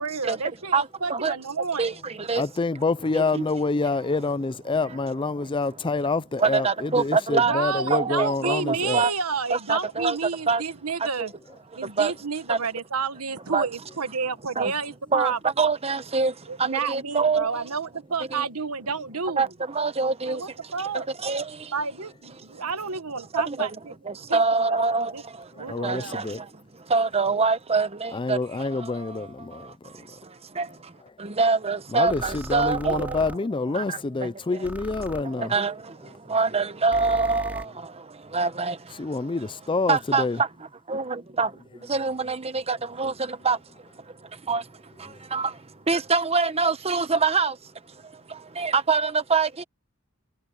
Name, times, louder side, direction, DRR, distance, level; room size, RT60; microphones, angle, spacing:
voice 1, 0.0-2.0 7.5-11.3 11.7-15.4 16.5-19.5 20.3-21.1 21.7-23.9 24.3-25.2 25.5-26.3, right 5 dB, 85° right, 1.4 m, -30 dB
voice 2, 2.4-9.0 25.7-26.4 28.1-29.7 31.9-35.5 39.0-40.4, left 3 dB, 20° left, 0.4 m, -27 dB
voice 3, 3.1-3.4 6.4-7.6 7.9-9.1 9.5-10.2 10.5-10.6 11.2-11.3 12.0-12.1 12.5-12.6 13.5-13.7 14.6-14.7 15.1-16.3 16.6-17.5 18.3-18.4 19.4-19.5 19.7-20.4 20.9-21.4 23.3-23.7 24.3-25.1 25.8-26.2 26.9-28.4 30.6-30.7 31.2-33.1 33.7-34.0 35.4-35.7 36.3-37.6 38.3-38.7 39.9-40.2 40.9-41.5 41.9-43.1 43.4-43.6 44.5-44.6 45.3-45.5 45.9-47.5 48.6-49.6, right 4 dB, 30° right, 1.1 m, -24 dB
sound 1, 32.1-33.4 34.6-35.2 36.9-37.7, equal, 5° right, 3.3 m, -38 dB
head